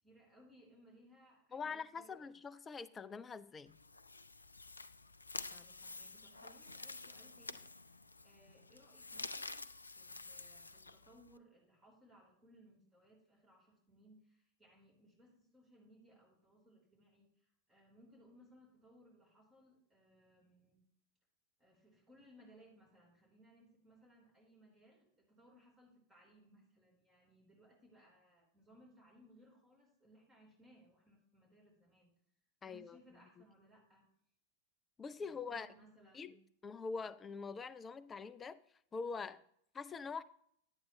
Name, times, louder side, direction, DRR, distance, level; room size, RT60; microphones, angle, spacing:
voice 1, 0.0-2.4 5.5-20.8 21.6-32.1 32.6-34.1 35.2-36.4, equal, 15° right, 3.9 m, -65 dB
voice 2, 1.5-3.8 5.5-5.6 32.6-33.0 35.0-35.7 36.1-36.3 36.6-38.6 38.9-39.4 39.7-40.2, left 5 dB, 20° left, 0.5 m, -44 dB
sound 1, 3.7-11.4, left 3 dB, 80° left, 0.3 m, -49 dB
10.5 x 8.7 x 3.1 m
figure-of-eight pair, 90°, 0 cm